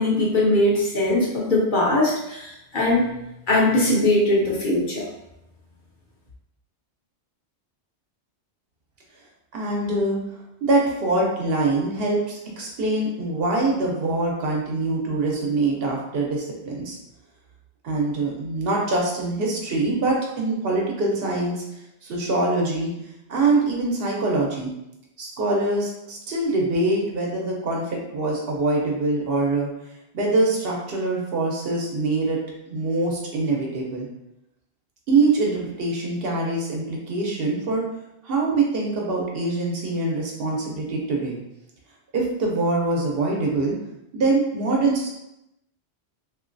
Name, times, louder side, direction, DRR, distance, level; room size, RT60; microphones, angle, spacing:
voice 1, 0.0-3.1 3.5-5.1, left 1 dB, 55° left, -4 dB, 0.7 m, -20 dB
voice 2, 9.5-10.2 10.6-17.0 17.8-21.6 22.0-22.9 23.3-24.7 25.2-29.7 30.1-32.4 32.7-34.1 35.1-37.8 38.2-41.4 42.1-43.8 44.1-45.1, right 2 dB, 65° right, -1 dB, 0.8 m, -24 dB
2.9 x 2.5 x 2.5 m, 0.87 s
omnidirectional pair, 1.1 m